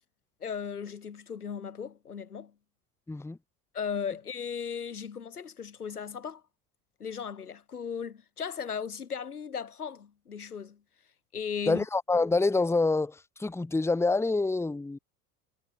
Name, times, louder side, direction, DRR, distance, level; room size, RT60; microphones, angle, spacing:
voice 1, 0.4-2.5 3.7-6.4 7.0-10.8 11.3-11.8, left 7 dB, 85° left, 1.8 m, -36 dB
voice 2, 3.1-3.4 11.7-15.0, left 3 dB, 5° left, 1.1 m, -27 dB
figure-of-eight pair, 70°, 44 cm